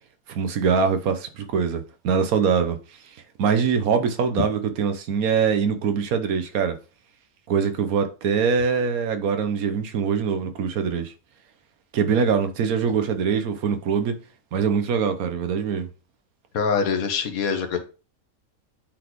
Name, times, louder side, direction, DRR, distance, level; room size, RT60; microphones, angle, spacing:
voice 1, 0.3-2.8 3.4-6.8 7.5-11.1 11.9-14.1 14.5-15.9, right 6 dB, 85° right, 1.3 m, -23 dB
voice 2, 16.5-17.8, left 6 dB, 85° left, 1.4 m, -24 dB
8.2 x 4.1 x 3.0 m
omnidirectional pair, 1.5 m